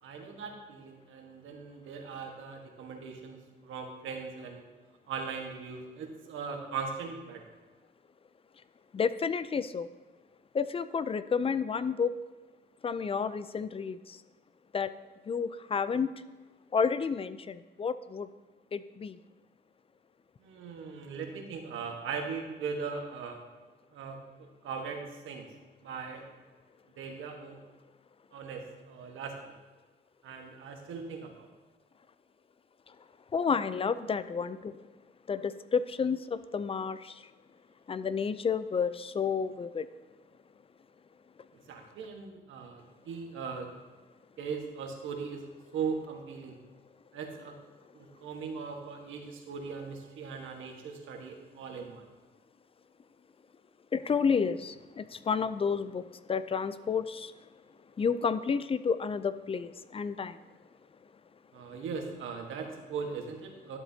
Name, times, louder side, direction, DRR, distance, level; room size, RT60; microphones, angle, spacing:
voice 1, 0.0-4.6 5.1-7.4 20.4-23.4 23.9-25.5 25.8-26.2 27.0-27.6 28.3-29.6 30.2-31.5 41.7-43.7 44.4-46.6 47.1-47.5 47.9-52.0 61.5-63.8, right 5 dB, 80° right, 3 dB, 1.4 m, -39 dB
voice 2, 8.9-9.9 10.5-12.1 12.8-14.2 14.7-14.9 15.3-16.1 16.7-18.3 18.7-19.2 33.3-34.7 35.3-37.2 37.9-39.9 53.9-56.0 56.3-57.3 58.0-60.4, left 6 dB, 30° left, 14 dB, 0.4 m, -30 dB
12.0 x 7.4 x 2.8 m, 1.3 s
cardioid pair, 90°, 20 cm